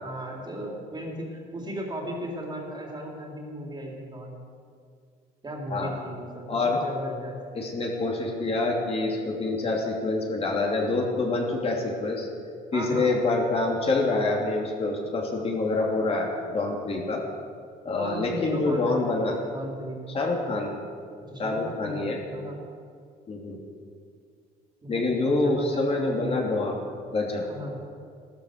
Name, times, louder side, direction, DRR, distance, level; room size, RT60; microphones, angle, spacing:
voice 1, 0.0-4.4 5.4-7.4 12.7-13.2 18.0-20.2 21.3-22.6 24.8-26.5 27.4-27.8, equal, 25° right, -1 dB, 3.7 m, -36 dB
voice 2, 6.5-6.8 7.6-12.3 12.7-17.2 17.8-19.4 20.1-20.7 21.4-22.2 23.3-23.6 24.9-26.8 27.1-27.4, left 2 dB, 35° left, -1 dB, 3.0 m, -26 dB
15.0 x 13.0 x 6.7 m, 2.2 s
cardioid pair, 110°, 17 cm